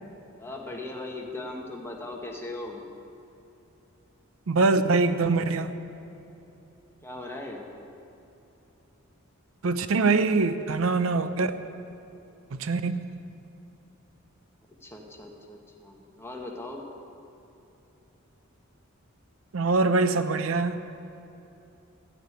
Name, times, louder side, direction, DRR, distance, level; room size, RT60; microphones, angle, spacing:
voice 1, 0.4-2.8 7.0-7.7 14.8-16.8, left 2 dB, 10° left, 0 dB, 1.3 m, -38 dB
voice 2, 4.5-5.7 9.6-11.5 12.5-13.1 19.5-20.8, right 3 dB, 70° right, 11 dB, 0.6 m, -23 dB
13.5 x 6.6 x 9.2 m, 2.9 s
head